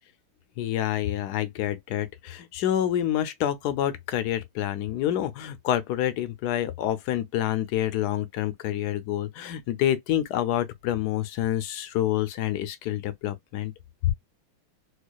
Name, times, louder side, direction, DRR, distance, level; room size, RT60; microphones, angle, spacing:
voice 1, 0.6-13.7 14.0-14.1, left 12 dB, 70° left, 1.0 m, -27 dB
4.4 x 2.3 x 2.2 m
omnidirectional pair, 2.1 m